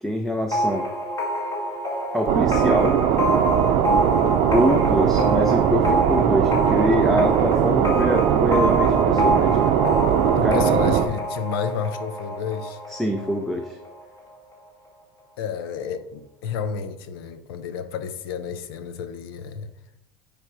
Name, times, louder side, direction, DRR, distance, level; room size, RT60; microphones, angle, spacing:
voice 1, 0.0-0.9 2.1-3.0 4.5-9.7 10.4-10.7 12.9-13.8, equal, ahead, 4 dB, 0.5 m, -24 dB
sound 1, 0.5-14.0, equal, 30° left, 1.8 m, -27 dB
sound 2, 2.3-11.1, right 9 dB, 60° right, 0.6 m, -20 dB
voice 2, 10.3-12.8 15.4-19.7, left 6 dB, 90° left, 10 dB, 0.7 m, -31 dB
8.7 x 3.4 x 4.7 m, 0.89 s
supercardioid pair, 125°, 12 cm